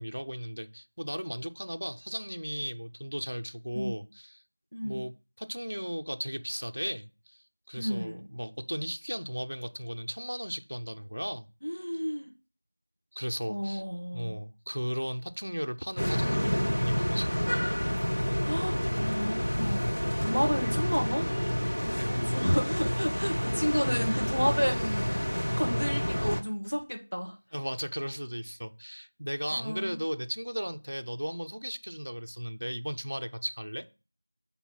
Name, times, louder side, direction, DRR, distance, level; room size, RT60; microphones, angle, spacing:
voice 1, 0.0-4.4 4.8-11.5 13.1-13.8 14.1-17.6 20.4-20.6 22.0-22.1 27.5-33.9, equal, 35° right, 0.5 m, -36 dB
voice 2, 4.7-5.0 7.8-8.2 11.6-12.3 13.5-14.4 18.4-19.8 20.2-21.3 21.7-25.2 25.6-27.4 29.5-30.0, equal, 80° left, 1.8 m, -31 dB
sound 1, 16.0-26.4, equal, 30° left, 0.6 m, -29 dB
5.9 x 4.2 x 5.3 m
figure-of-eight pair, 180°, 0 cm